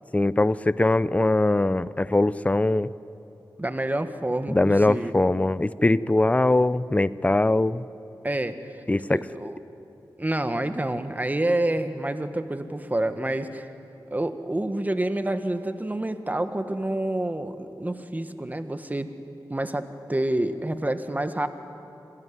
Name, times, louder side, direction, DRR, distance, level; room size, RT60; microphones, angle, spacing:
voice 1, 0.1-2.9 4.5-7.8 8.9-9.2, left 2 dB, 20° left, 17 dB, 0.6 m, -21 dB
voice 2, 3.6-5.1 8.2-8.8 9.1-9.6 10.2-13.7 14.1-19.1 19.5-21.5, right 1 dB, 20° right, 9 dB, 1.5 m, -28 dB
26.0 x 16.5 x 9.7 m, 2.9 s
cardioid pair, 55°, 8 cm